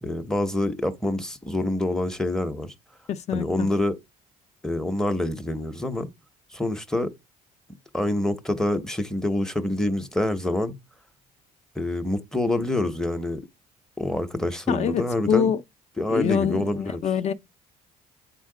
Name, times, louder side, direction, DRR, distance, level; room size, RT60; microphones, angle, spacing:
voice 1, 0.0-2.7 3.3-4.0 4.6-6.1 6.5-7.1 7.9-10.8 11.8-13.5 14.0-15.5 16.0-17.0, left 1 dB, 5° left, 0.7 m, -26 dB
voice 2, 3.1-3.7 14.7-15.6 16.1-17.3, left 8 dB, 45° left, 0.6 m, -25 dB
9.0 x 4.2 x 3.8 m
cardioid pair, 130°, 16 cm